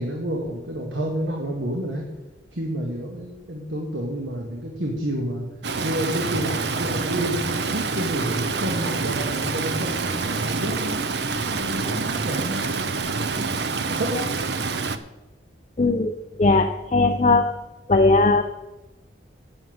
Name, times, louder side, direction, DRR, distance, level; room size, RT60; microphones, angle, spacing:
voice 1, 0.0-2.1 2.5-5.5 5.8-13.6 13.9-14.3, equal, 75° right, 0 dB, 1.8 m, -30 dB
Stream, 5.6-15.0, right 4 dB, 60° right, 0.7 m, -27 dB
voice 2, 15.8-16.1 16.4-17.5 17.9-18.4, left 3 dB, 35° left, 5 dB, 0.6 m, -18 dB
9.2 x 7.0 x 7.8 m, 1.0 s
head